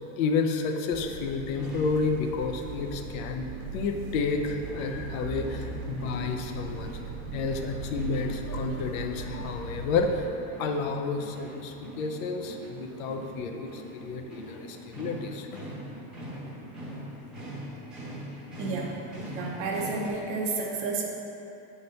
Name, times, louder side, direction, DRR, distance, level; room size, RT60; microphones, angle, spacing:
voice 1, 0.2-6.9 7.3-10.3 10.6-15.5, left 4 dB, 70° left, 4 dB, 0.7 m, -30 dB
sound 1, 0.9-10.2, right 4 dB, 75° right, 1.3 m, -38 dB
sound 2, 1.5-20.1, equal, ahead, 0.8 m, -43 dB
voice 2, 18.6-19.0 19.3-21.0, right 3 dB, 35° right, -1 dB, 0.7 m, -31 dB
8.9 x 3.9 x 3.9 m, 2.9 s
cardioid pair, 170°, 42 cm